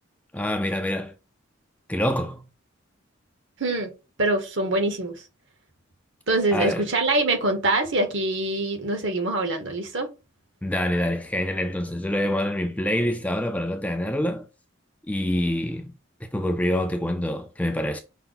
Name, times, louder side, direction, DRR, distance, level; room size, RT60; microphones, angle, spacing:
voice 1, 0.3-1.1 1.9-2.4 6.5-6.8 10.6-14.5 15.1-15.9 16.3-18.0, left 1 dB, 5° left, 0.3 m, -26 dB
voice 2, 3.6-3.9 4.2-5.1 6.3-10.1, right 2 dB, 65° right, 1.1 m, -24 dB
5.6 x 2.1 x 3.8 m
head